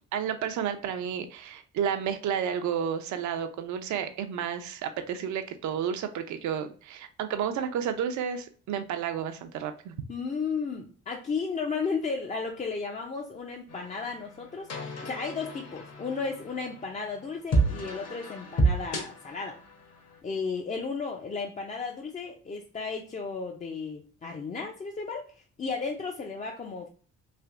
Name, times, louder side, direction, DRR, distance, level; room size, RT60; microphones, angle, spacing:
voice 1, 0.1-9.9, right 8 dB, 70° right, 8 dB, 0.5 m, -31 dB
voice 2, 10.1-14.7 15.0-19.6 20.2-25.3 25.6-26.9, left 4 dB, 25° left, 1 dB, 0.4 m, -34 dB
sound 1, 13.7-20.2, right 2 dB, 55° left, 1.0 m, -31 dB
3.3 x 2.6 x 2.4 m, 0.39 s
cardioid pair, 90°, 30 cm